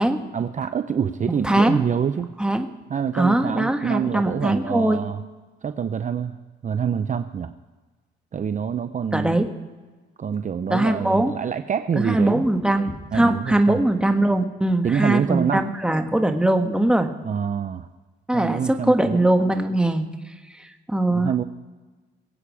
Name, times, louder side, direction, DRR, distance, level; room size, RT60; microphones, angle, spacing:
voice 1, 0.3-2.3 2.9-5.2 5.6-6.4 6.6-7.5 8.3-9.4 10.2-12.5 13.1-13.8 14.8-15.7 17.2-17.9 18.3-19.2 21.1-21.4, right 7 dB, 40° right, 10 dB, 0.7 m, -26 dB
voice 2, 1.4-1.8 2.4-2.7 3.1-5.0 9.1-9.5 10.7-11.3 11.9-17.1 18.3-20.1 20.9-21.3, right 1 dB, 5° right, 5 dB, 1.6 m, -21 dB
23.5 x 8.6 x 4.9 m, 1.3 s
cardioid pair, 90°, 20 cm